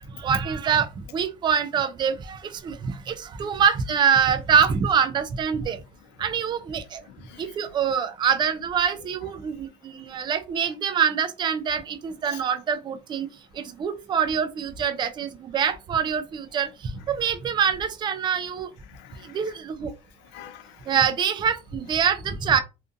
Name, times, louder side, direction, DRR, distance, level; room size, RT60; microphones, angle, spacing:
voice 1, 0.2-5.8 6.2-7.0 7.4-13.3 13.5-16.7 17.1-18.7 19.3-19.9 20.9-22.6, right 7 dB, 25° right, 0.3 m, -25 dB
voice 2, 7.1-7.6 12.3-12.4 16.9-17.0 18.9-19.5 20.3-21.1, left 11 dB, 70° left, 0.5 m, -46 dB
2.5 x 2.5 x 2.4 m
cardioid pair, 135°, 19 cm